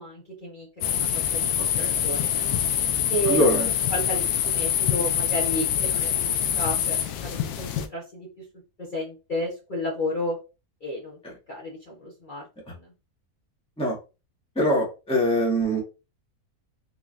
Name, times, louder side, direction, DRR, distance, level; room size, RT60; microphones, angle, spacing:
voice 1, 0.0-1.5 1.7-2.3 3.1-3.5 3.9-8.4 8.8-10.4 10.8-11.2 11.5-12.9, equal, 40° left, -4 dB, 1.0 m, -32 dB
sound 1, 0.8-7.9, left 10 dB, 90° left, 1.1 m, -25 dB
voice 2, 3.3-3.7 13.8-14.0 14.5-15.8, equal, 5° left, -3 dB, 1.1 m, -23 dB
3.9 x 3.0 x 2.5 m, 0.29 s
omnidirectional pair, 1.6 m